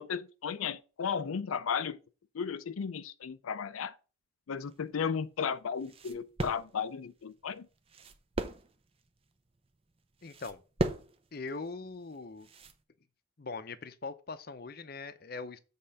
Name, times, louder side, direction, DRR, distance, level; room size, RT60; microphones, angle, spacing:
voice 1, 0.0-2.0 2.3-3.9 4.5-7.7, left 6 dB, 90° left, 0.5 m, -34 dB
sound 1, 4.6-12.8, right 1 dB, 25° right, 0.6 m, -40 dB
voice 2, 10.2-10.6 11.3-12.5 13.4-15.6, left 3 dB, 45° left, 0.6 m, -41 dB
7.6 x 3.7 x 5.4 m
head